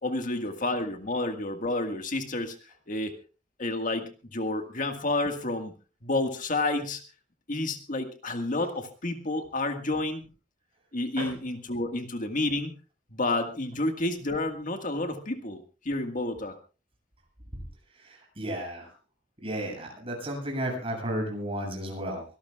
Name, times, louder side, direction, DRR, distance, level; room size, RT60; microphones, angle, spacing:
voice 1, 0.0-3.1 3.6-5.7 6.0-7.0 7.5-10.2 10.9-12.8 13.1-16.6, left 2 dB, 50° left, 6 dB, 1.7 m, -30 dB
voice 2, 17.9-18.9 19.4-22.2, right 1 dB, 30° right, 1 dB, 7.6 m, -33 dB
24.0 x 18.0 x 2.4 m, 0.34 s
head